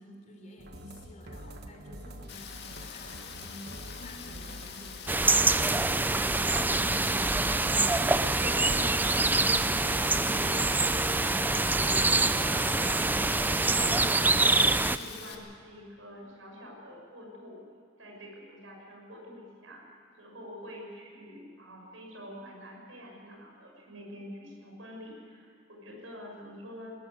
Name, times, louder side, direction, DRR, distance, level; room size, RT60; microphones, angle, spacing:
voice 1, 0.0-5.6 6.0-7.9 9.7-10.4, left 1 dB, 40° left, 2 dB, 3.6 m, -48 dB
sound 1, 0.6-11.9, right 1 dB, 55° right, 1.4 m, -46 dB
Rain, 2.3-15.4, left 7 dB, 55° left, 2.0 m, -44 dB
sound 2, 5.1-15.0, right 2 dB, 10° right, 0.4 m, -25 dB
voice 2, 8.4-9.8 10.2-14.6 14.9-17.6 18.0-19.9 20.2-26.9, equal, 80° right, -1 dB, 6.5 m, -46 dB
21.0 x 14.0 x 9.7 m, 2.4 s
head